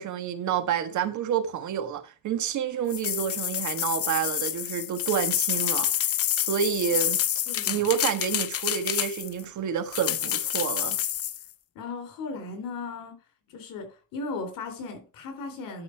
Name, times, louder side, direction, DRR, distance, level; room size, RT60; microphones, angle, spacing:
voice 1, 0.0-6.1 6.4-7.2 7.7-11.0, right 8 dB, 65° right, 1.5 m, -29 dB
sound 1, 2.9-9.4 9.9-11.4, left 11 dB, 45° left, 0.7 m, -28 dB
voice 2, 7.5-7.8 11.8-13.2 13.5-15.8, left 3 dB, 90° left, 3.6 m, -36 dB
11.5 x 5.5 x 4.6 m
cardioid pair, 145°, 32 cm